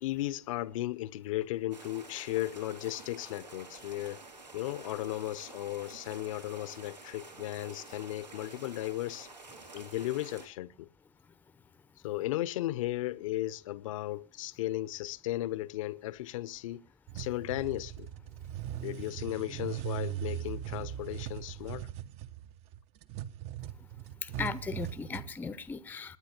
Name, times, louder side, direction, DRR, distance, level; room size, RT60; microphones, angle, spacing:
voice 1, 0.0-4.2 4.5-9.3 9.7-10.9 12.0-16.9 17.1-18.1 18.8-21.9, left 16 dB, 50° left, 0.7 m, -35 dB
sound 1, 1.7-10.5, right 3 dB, 90° right, 2.8 m, -49 dB
sound 2, 17.1-25.3, right 12 dB, 30° right, 0.7 m, -40 dB
voice 2, 24.2-26.2, left 5 dB, 10° left, 0.7 m, -37 dB
27.0 x 10.0 x 2.8 m
figure-of-eight pair, 105°, 21 cm